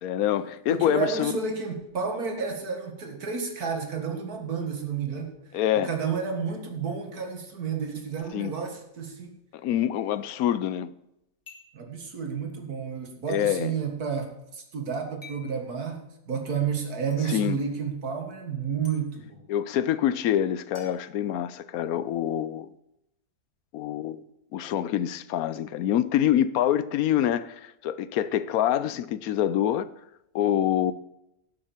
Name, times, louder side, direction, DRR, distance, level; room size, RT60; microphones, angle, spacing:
voice 1, 0.0-1.3 5.5-5.9 8.3-8.5 9.5-10.9 13.3-13.7 17.3-17.6 19.5-22.7 23.7-24.2 24.5-29.9 30.3-30.9, left 11 dB, 75° left, 1.1 m, -26 dB
voice 2, 0.7-9.3 11.7-19.4, right 6 dB, 85° right, 2.3 m, -31 dB
sound 1, 11.5-11.8 13.3-13.4 15.2-15.5 17.1-17.2 18.8-19.0 20.7-21.8, left 4 dB, 25° left, 2.7 m, -50 dB
11.0 x 6.6 x 7.2 m
omnidirectional pair, 1.6 m